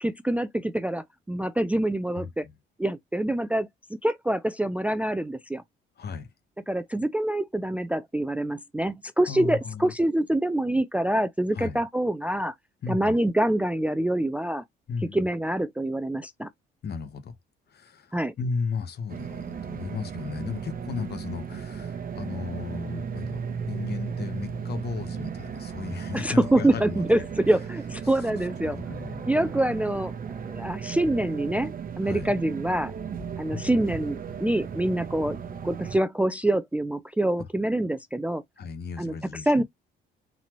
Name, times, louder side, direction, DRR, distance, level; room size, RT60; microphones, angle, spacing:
voice 1, 0.0-2.5 2.8-3.7 4.0-5.6 6.7-12.5 12.9-14.6 15.1-16.5 18.1-18.3 26.1-28.8 29.2-30.1 30.4-32.9 33.4-35.4 35.6-38.4 39.0-39.1 39.5-39.6, right 1 dB, 5° right, 0.3 m, -25 dB
voice 2, 2.2-2.5 6.0-6.3 9.3-9.9 11.5-11.8 12.8-13.2 14.9-15.3 16.8-17.3 17.7-27.2 28.0-28.2 28.6-29.3 32.0-32.3 33.5-33.8 37.4-37.5 38.6-39.6, left 5 dB, 55° left, 1.0 m, -35 dB
sound 1, 19.1-36.0, right 6 dB, 45° right, 0.8 m, -35 dB
4.0 x 2.9 x 2.9 m
cardioid pair, 90°, 20 cm